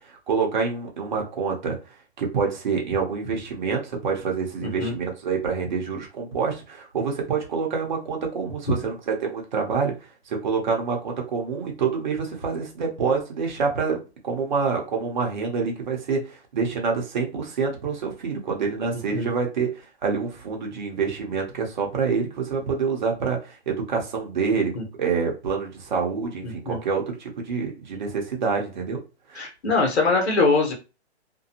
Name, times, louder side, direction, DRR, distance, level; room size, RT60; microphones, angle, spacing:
voice 1, 0.1-1.8 2.2-9.9 10.3-24.7 25.0-29.0 29.3-29.5, right 5 dB, 45° right, 1 dB, 0.9 m, -27 dB
voice 2, 4.6-5.0 19.1-19.3 24.7-24.8 26.4-26.8 29.3-30.7, left 3 dB, 65° left, 1 dB, 1.2 m, -23 dB
2.6 x 2.3 x 2.8 m, 0.31 s
hypercardioid pair, 170°, 34 cm